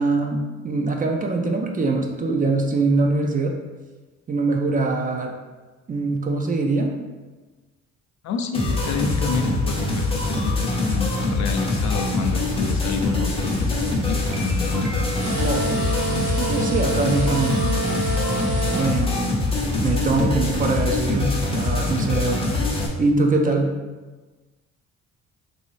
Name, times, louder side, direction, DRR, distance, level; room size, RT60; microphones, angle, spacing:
voice 1, 0.0-3.6 4.3-5.3 5.9-6.9 15.4-15.7 16.4-17.7 18.7-19.3 19.8-22.5 23.0-23.7, right 3 dB, 30° right, 2 dB, 0.4 m, -23 dB
voice 2, 8.2-14.9, left 5 dB, 65° left, 5 dB, 0.5 m, -29 dB
sound 1, 8.5-22.9, left 2 dB, 20° left, 0.6 m, -24 dB
sound 2, 11.9-12.0 13.1-13.2 13.8-13.9 14.1-16.1 17.2-17.3 17.7-17.8 18.2-18.5 18.9-19.0 19.1-19.2 19.6-19.7, left 1 dB, 80° right, 0.6 m, -41 dB
sound 3, 15.2-18.9, right 3 dB, 55° right, 1.2 m, -27 dB
3.0 x 2.7 x 3.1 m, 1.3 s
cardioid pair, 90°, 30 cm